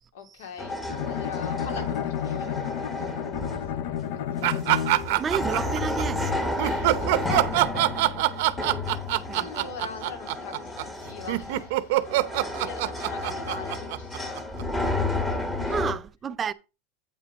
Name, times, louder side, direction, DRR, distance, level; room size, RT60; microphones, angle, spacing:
voice 1, 0.1-0.8 1.0-4.6 6.6-7.6 8.0-8.6 9.3-12.2 12.6-15.8, left 5 dB, 75° left, 2.5 m, -43 dB
sound 1, 0.6-15.9, left 2 dB, 5° left, 1.1 m, -32 dB
Bowed string instrument, 0.9-5.3, left 9 dB, 55° left, 0.6 m, -31 dB
sound 2, 4.4-6.0 6.6-14.8, right 16 dB, 60° right, 0.7 m, -24 dB
voice 2, 5.2-6.6 9.1-9.5 15.7-16.5, right 6 dB, 20° right, 0.3 m, -31 dB
8.4 x 5.6 x 5.1 m
supercardioid pair, 165°, 0 cm